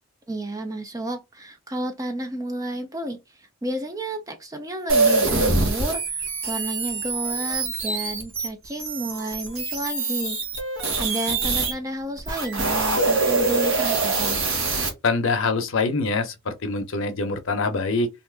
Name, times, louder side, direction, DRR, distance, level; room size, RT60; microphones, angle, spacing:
voice 1, 0.3-10.4 11.0-14.4, right 1 dB, 15° right, 0.4 m, -31 dB
sound 1, 4.9-11.7 12.2-14.9, right 3 dB, 65° right, 1.1 m, -24 dB
voice 2, 15.0-18.1, left 3 dB, 65° left, 0.6 m, -24 dB
2.7 x 2.4 x 3.3 m
head